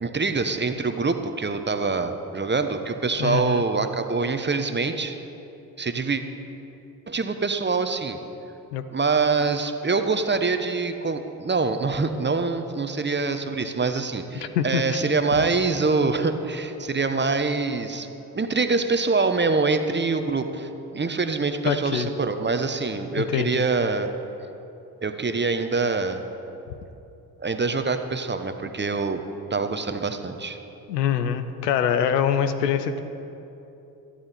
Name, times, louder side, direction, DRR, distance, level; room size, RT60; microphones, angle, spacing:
voice 1, 0.0-5.2 5.8-6.2 7.1-8.2 8.9-18.1 18.3-24.1 25.0-26.2 27.4-29.2 29.5-30.6, right 4 dB, 20° right, 8 dB, 1.0 m, -25 dB
voice 2, 3.2-3.6 8.7-8.8 14.5-15.0 21.7-22.1 23.2-23.6 30.9-33.0, left 8 dB, 90° left, 10 dB, 0.6 m, -24 dB
14.0 x 12.5 x 4.3 m, 2.8 s
hypercardioid pair, 40°, 48 cm